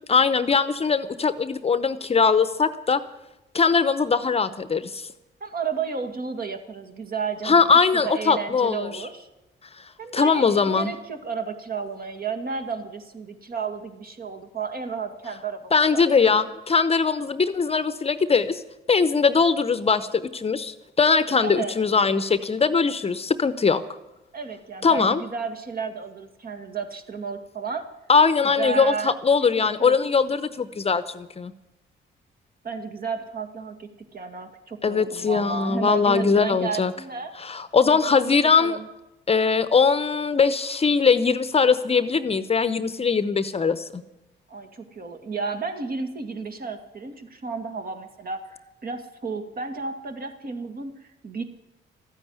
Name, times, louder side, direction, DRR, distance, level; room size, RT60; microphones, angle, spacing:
voice 1, 0.1-3.0 3.5-5.1 7.4-9.0 10.1-10.9 15.7-18.6 18.9-23.8 24.8-25.2 28.1-31.5 34.8-36.9 37.4-38.8 39.3-44.0, left 5 dB, 30° left, 13 dB, 0.8 m, -21 dB
voice 2, 5.4-7.6 8.0-9.3 10.0-16.0 21.4-21.8 24.3-27.9 28.4-30.0 32.6-37.3 37.8-38.9 44.5-51.4, right 5 dB, 50° right, 6 dB, 2.1 m, -32 dB
14.0 x 9.8 x 9.5 m, 0.95 s
cardioid pair, 90°, 20 cm